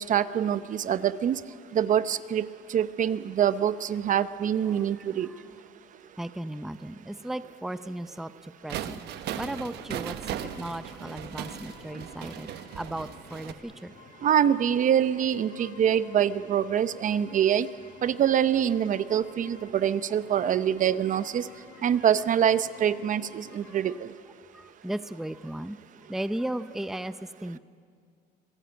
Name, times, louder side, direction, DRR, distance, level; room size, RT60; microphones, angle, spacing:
voice 1, 0.0-1.4 1.7-5.3 14.2-17.7 18.0-21.5 21.8-24.1, right 9 dB, 50° right, 14 dB, 0.8 m, -25 dB
voice 2, 4.7-5.4 6.2-9.0 9.4-13.9 15.6-15.7 21.5-21.9 23.6-24.0 24.5-25.8 26.1-27.6, right 1 dB, ahead, 12 dB, 0.6 m, -36 dB
sound 1, 8.7-13.5, right 10 dB, 75° right, 1.2 m, -37 dB
sound 2, 10.4-23.9, left 6 dB, 75° left, 3.2 m, -52 dB
26.5 x 16.5 x 9.0 m, 2.2 s
cardioid pair, 110°, 17 cm